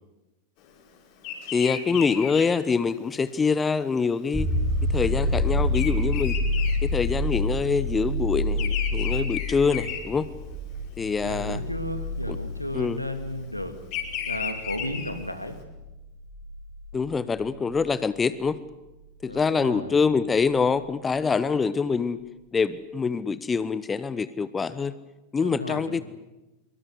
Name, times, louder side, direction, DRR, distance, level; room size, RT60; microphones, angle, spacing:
Bird vocalization bird call bird song, 1.2-7.6 7.9-10.8 11.2-11.6 12.6-15.5, left 8 dB, 45° left, 5.5 m, -35 dB
voice 1, 1.5-4.5 4.9-6.4 6.8-10.3 11.0-11.6 12.3-12.4 12.7-13.0 16.9-18.6 19.2-22.2 22.5-25.0 25.3-26.0, left 5 dB, 15° left, 16 dB, 1.0 m, -25 dB
sound 1, 4.3-17.8 20.6-20.7, left 1 dB, 5° right, 4.9 m, -28 dB
voice 2, 11.2-13.8 14.3-15.6 19.3-19.9 25.4-26.0, left 1 dB, 90° left, 7 dB, 2.6 m, -34 dB
25.0 x 23.5 x 8.3 m, 1.0 s
figure-of-eight pair, 90°, 0 cm